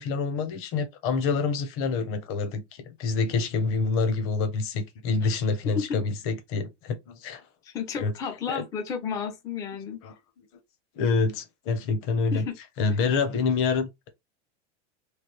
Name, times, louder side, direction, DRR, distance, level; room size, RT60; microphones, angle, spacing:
voice 1, 0.0-7.4 8.0-8.1 8.5-8.6 10.0-10.1 11.0-12.5 12.8-14.1, left 4 dB, 40° left, 0.8 m, -27 dB
voice 2, 5.6-6.0 7.6-10.0 12.3-12.5, left 6 dB, 10° left, 0.3 m, -32 dB
3.2 x 2.4 x 3.0 m
supercardioid pair, 145°, 36 cm